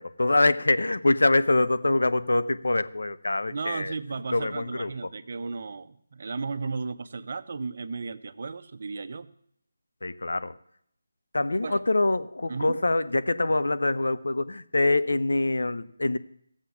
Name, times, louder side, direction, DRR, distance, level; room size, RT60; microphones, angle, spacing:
voice 1, 0.0-3.9 4.3-5.1 10.0-10.5 11.3-16.2, left 2 dB, 80° left, 13 dB, 0.8 m, -24 dB
voice 2, 3.5-9.3 11.6-11.8 12.5-12.8, right 4 dB, 50° right, 12 dB, 0.7 m, -34 dB
15.5 x 7.4 x 7.1 m, 0.70 s
figure-of-eight pair, 165°, 0 cm